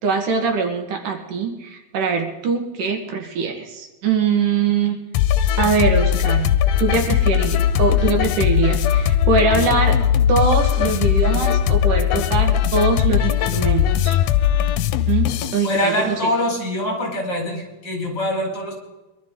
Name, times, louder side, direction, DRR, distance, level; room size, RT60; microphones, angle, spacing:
voice 1, 0.0-5.0 5.6-6.5 6.8-10.0 10.3-14.2 15.1-16.3, right 5 dB, 85° right, 4 dB, 3.4 m, -22 dB
sound 1, 5.1-15.7, left 10 dB, 80° left, 2.2 m, -19 dB
voice 2, 15.6-18.7, left 1 dB, 30° left, -1 dB, 5.2 m, -24 dB
23.0 x 12.5 x 3.8 m, 1.1 s
omnidirectional pair, 3.6 m